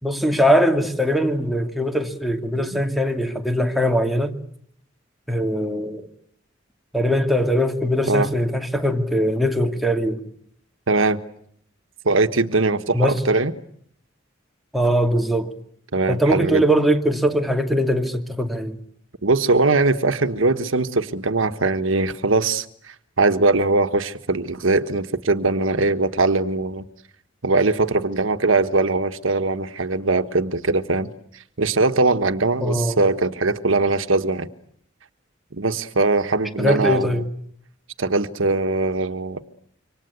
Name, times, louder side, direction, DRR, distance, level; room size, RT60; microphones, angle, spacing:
voice 1, 0.0-4.4 5.3-6.1 6.9-10.2 12.9-13.2 14.7-15.5 16.1-18.8 32.6-33.0 36.6-37.3, equal, ahead, 2.5 m, -21 dB
voice 2, 10.9-11.2 12.0-13.5 15.9-16.6 19.2-26.8 27.4-31.1 31.6-34.5 35.5-37.1 38.0-39.4, right 3 dB, 80° right, 1.4 m, -21 dB
27.5 x 25.0 x 8.2 m
head